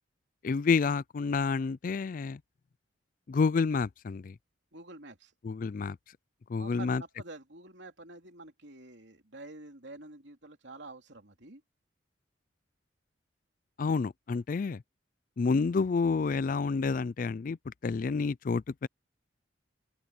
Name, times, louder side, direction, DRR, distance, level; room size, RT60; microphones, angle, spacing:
voice 1, 0.4-2.4 3.3-4.4 5.4-6.0 6.5-7.0 13.8-14.8 15.4-18.9, left 4 dB, 45° left, 0.4 m, -29 dB
voice 2, 4.7-5.3 6.6-11.6, right 2 dB, 70° right, 3.1 m, -48 dB
open air
head